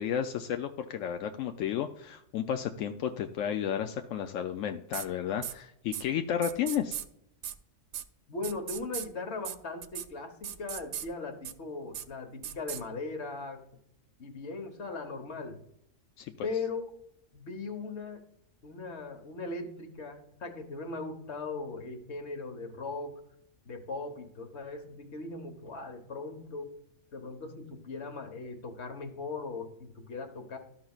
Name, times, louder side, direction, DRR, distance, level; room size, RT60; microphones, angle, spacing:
voice 1, 0.0-7.0 16.2-16.5, left 9 dB, 90° left, 6 dB, 1.0 m, -32 dB
sound 1, 4.9-5.1 5.4-5.5 5.9-6.0 6.4-7.0 7.4-7.5 7.9-8.0 8.4-9.1 9.4-9.5 9.8-10.1 10.4-11.1 11.4-11.5 11.9-12.0 12.4-12.8, right 10 dB, 70° right, 0.8 m, -37 dB
voice 2, 8.3-13.6 14.2-15.6 16.4-16.9 17.3-18.2 18.6-23.2 23.6-26.7 27.1-30.6, left 3 dB, 60° left, 6 dB, 1.4 m, -39 dB
13.0 x 5.8 x 2.3 m, 0.74 s
omnidirectional pair, 1.3 m